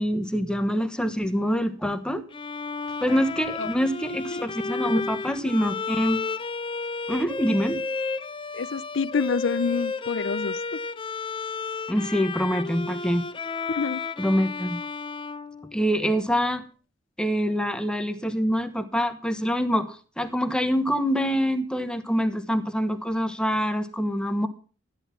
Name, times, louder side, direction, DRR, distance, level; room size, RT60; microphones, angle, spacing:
voice 1, 0.0-2.2 3.0-6.2 7.1-7.8 11.9-13.3 14.2-14.8 15.7-16.6 17.2-24.5, equal, 5° left, 1.2 m, -25 dB
Bowed string instrument, 2.3-16.2, left 4 dB, 25° left, 0.7 m, -32 dB
voice 2, 8.5-10.8 13.7-14.0, left 5 dB, 70° left, 0.6 m, -28 dB
14.0 x 10.0 x 5.8 m
head